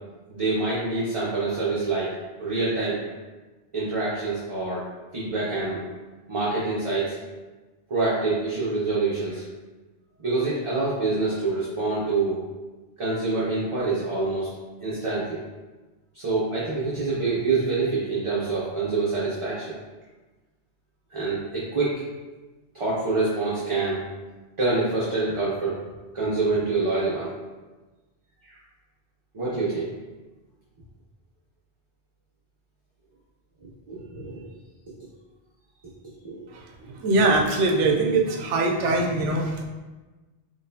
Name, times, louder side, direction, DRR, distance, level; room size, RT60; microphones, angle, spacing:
voice 1, 0.3-2.1 2.4-3.1 3.7-4.8 5.1-5.8 6.3-7.2 7.9-9.4 10.2-12.4 13.0-14.5 14.8-15.4 16.1-19.8 21.1-22.0 22.7-24.0 24.6-25.8 26.1-27.3 28.4-28.5 29.3-29.9 33.9-34.5 36.2-36.4, right 3 dB, 35° right, -8 dB, 0.6 m, -26 dB
voice 2, 36.5-39.7, right 2 dB, 90° right, 2 dB, 0.9 m, -22 dB
4.1 x 3.0 x 2.7 m, 1.2 s
omnidirectional pair, 1.2 m